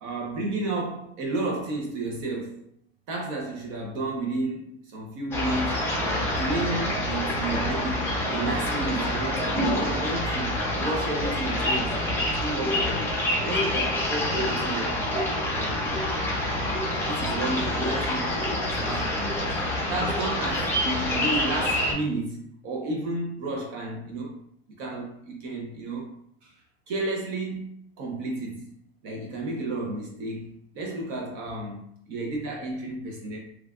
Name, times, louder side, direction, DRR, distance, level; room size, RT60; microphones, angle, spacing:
voice 1, 0.0-2.7 3.1-12.0 12.4-13.2 13.4-15.0 15.6-15.9 17.0-24.4 24.8-26.1 26.4-26.5 26.9-27.7 28.0-28.7 29.0-33.4, right 2 dB, 55° right, -1 dB, 0.8 m, -32 dB
sound 1, 5.3-21.9, left 1 dB, 5° left, 0.5 m, -27 dB
3.1 x 2.3 x 2.4 m, 0.67 s
supercardioid pair, 145°, 31 cm